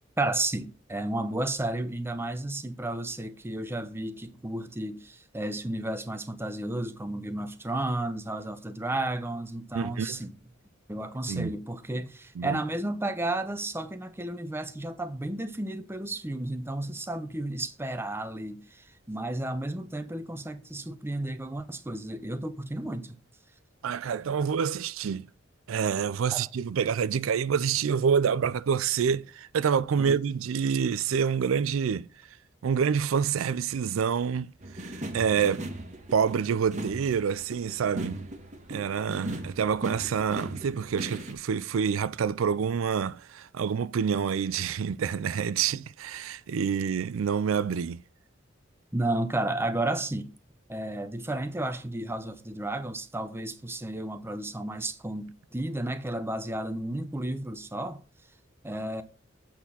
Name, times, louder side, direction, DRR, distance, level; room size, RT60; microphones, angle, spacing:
voice 1, 0.2-10.4 10.9-23.2 26.3-26.4 30.0-30.2 48.9-50.3 50.7-58.0 58.6-59.0, right 1 dB, 10° right, 0.7 m, -32 dB
voice 2, 9.7-10.2 11.3-11.5 12.4-12.6 23.8-25.3 25.7-32.1 32.6-35.7 36.1-38.2 38.7-48.0, right 7 dB, 85° right, 0.4 m, -27 dB
sound 1, 34.6-41.3, right 1 dB, 40° right, 1.4 m, -38 dB
8.2 x 4.3 x 5.5 m
head